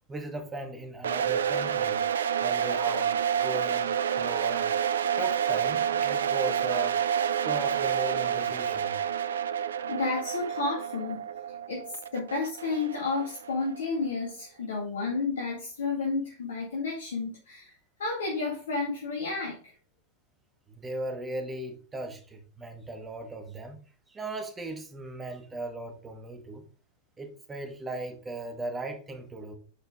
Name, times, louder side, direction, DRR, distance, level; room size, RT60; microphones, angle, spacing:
voice 1, 0.1-2.0 2.4-4.7 5.2-7.0 7.4-9.0 20.7-23.8 24.1-26.6 27.2-29.5, right 2 dB, 15° right, 1.8 m, -37 dB
sound 1, 1.0-13.9, right 8 dB, 65° right, 0.5 m, -29 dB
voice 2, 9.9-11.2 11.7-17.7 18.0-19.7, left 4 dB, 65° left, 2.1 m, -31 dB
8.7 x 5.6 x 3.7 m
figure-of-eight pair, 90°, 0 cm